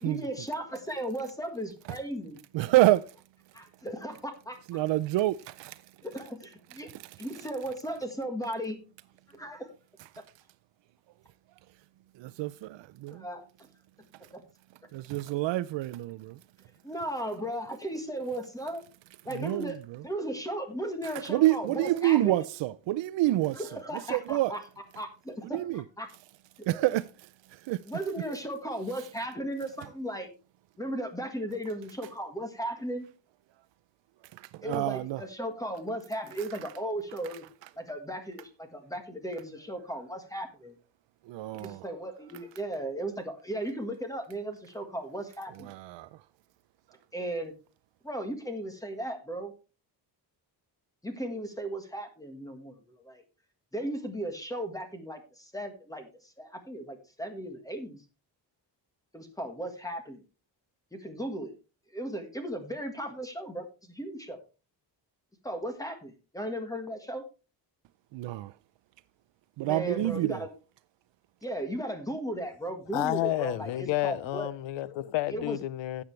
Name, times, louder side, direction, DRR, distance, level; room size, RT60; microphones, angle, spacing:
voice 1, 0.0-2.4 3.5-4.6 6.0-6.9 7.2-8.8 9.3-9.7 10.2-10.3 13.1-13.5 14.3-14.4 16.8-18.8 19.2-22.4 23.5-24.6 24.9-26.1 26.7-26.8 27.9-30.3 30.8-33.0 34.6-37.4 37.8-40.7 41.5-45.7 47.1-47.5 48.0-49.5 51.0-53.2 53.7-58.0 59.1-60.2 60.9-61.5 61.9-64.4 65.4-67.2 69.6-70.5 71.4-74.5 75.3-75.6, right 1 dB, 10° left, 1.5 m, -36 dB
voice 2, 2.5-3.1 4.7-5.8 12.2-13.2 14.9-16.4 19.3-19.7 21.3-23.6 24.1-24.5 25.5-25.8 26.7-27.1 27.5-27.8 34.4-35.2 41.3-41.8 45.7-46.1 68.1-68.5 69.6-70.4, right 16 dB, 80° right, 0.5 m, -27 dB
voice 3, 72.9-76.0, left 14 dB, 85° left, 0.7 m, -30 dB
13.0 x 8.2 x 3.2 m
cardioid pair, 160°, 44 cm